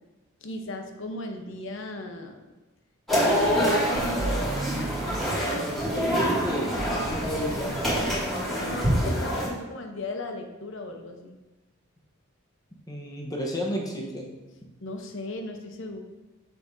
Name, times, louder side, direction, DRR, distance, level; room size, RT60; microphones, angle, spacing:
voice 1, 0.4-2.5 3.1-4.5 8.6-11.4 14.8-16.0, left 2 dB, 65° left, 5 dB, 0.8 m, -36 dB
sound 1, 3.1-9.5, equal, ahead, 2.2 m, -26 dB
sound 2, 3.9-6.1 6.8-8.3 8.6-8.9, right 2 dB, 40° right, 0.4 m, -36 dB
voice 2, 5.6-7.7 12.9-14.3, equal, 20° left, -1 dB, 0.9 m, -32 dB
7.4 x 6.6 x 2.7 m, 1.1 s
head